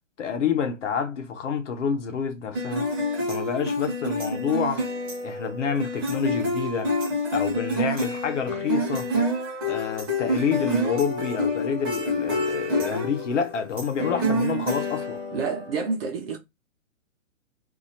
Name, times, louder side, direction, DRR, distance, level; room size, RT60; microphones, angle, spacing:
voice 1, 0.2-2.9 3.3-4.8 5.2-6.9 7.3-9.1 9.7-15.2, left 6 dB, 65° left, 1.0 m, -28 dB
sound 1, 2.5-15.7, left 1 dB, 20° right, 0.8 m, -28 dB
voice 2, 15.3-16.4, right 4 dB, 45° right, 0.9 m, -28 dB
2.8 x 2.8 x 3.9 m
hypercardioid pair, 170°, 40 cm